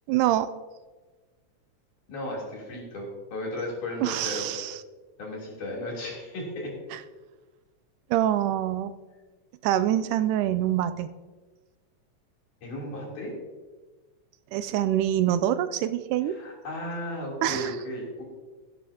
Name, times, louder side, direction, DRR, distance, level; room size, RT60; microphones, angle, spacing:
voice 1, 0.1-0.5 4.0-4.8 6.9-7.0 8.1-8.9 9.6-11.1 14.5-16.4 17.4-17.8, right 12 dB, 80° right, 13 dB, 2.0 m, -25 dB
voice 2, 2.1-4.5 5.2-6.7 12.6-13.3 16.3-18.2, left 1 dB, 70° left, -4 dB, 4.8 m, -35 dB
16.5 x 11.0 x 2.9 m, 1.3 s
omnidirectional pair, 3.7 m